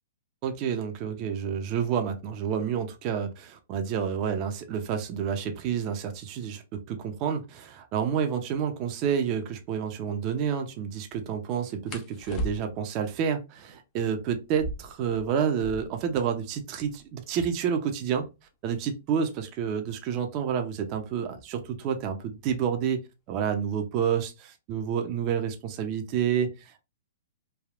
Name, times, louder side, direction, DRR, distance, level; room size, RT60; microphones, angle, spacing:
voice 1, 0.4-6.6 6.9-18.3 18.6-23.0 23.3-26.8, right 7 dB, 40° right, 0.6 m, -29 dB
sound 1, 9.2-9.4 11.9-13.0 14.4-16.1 16.4-16.5 16.7-17.3 17.9-20.5 21.5-21.8 22.2-22.6 23.0-23.7, equal, 30° left, 0.5 m, -39 dB
3.4 x 2.3 x 2.4 m
hypercardioid pair, 125°, 0 cm